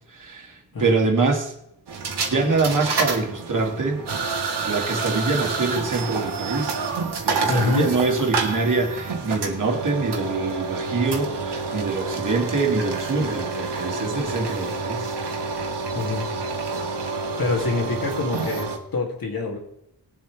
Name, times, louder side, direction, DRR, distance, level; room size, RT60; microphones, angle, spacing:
voice 1, 0.1-1.5 2.1-4.0 4.6-6.8 7.2-15.1, right 3 dB, 50° right, 1 dB, 2.3 m, -24 dB
sound 1, 1.9-18.8, right 4 dB, 85° right, 2.0 m, -28 dB
voice 2, 7.5-7.9 15.9-16.3 17.4-19.6, left 3 dB, 60° left, 0 dB, 2.8 m, -25 dB
20.5 x 7.6 x 3.4 m, 0.80 s
wide cardioid pair, 130°, 40 cm